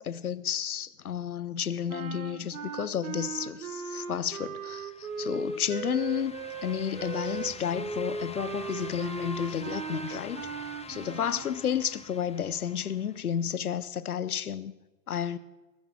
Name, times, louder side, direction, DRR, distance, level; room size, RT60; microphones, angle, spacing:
voice 1, 0.0-6.3 6.6-10.5 10.9-14.7 15.1-15.4, left 9 dB, 85° left, 0.7 m, -31 dB
sound 1, 1.9-11.5, right 5 dB, 75° right, 1.3 m, -37 dB
sound 2, 4.6-13.5, left 5 dB, 15° left, 1.1 m, -47 dB
21.0 x 7.4 x 6.0 m
figure-of-eight pair, 70°, 43 cm